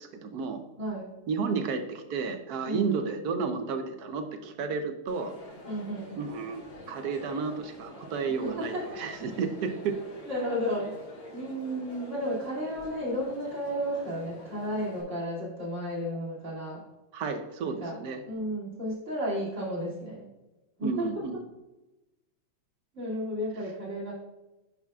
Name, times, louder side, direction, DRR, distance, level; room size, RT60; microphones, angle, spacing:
voice 1, 0.0-0.6 1.3-5.3 6.2-10.0 17.1-18.2 20.8-21.4, right 5 dB, 65° right, 7 dB, 1.0 m, -32 dB
voice 2, 0.8-1.1 2.6-3.0 5.7-6.1 8.4-8.8 10.2-11.0 11.3-16.8 17.6-17.9 18.2-20.3 20.8-21.2 22.9-24.1, equal, 35° right, -6 dB, 2.7 m, -33 dB
Crowd, 5.1-15.0, left 1 dB, 70° left, 2.3 m, -47 dB
10.0 x 5.7 x 2.3 m, 1.0 s
omnidirectional pair, 2.2 m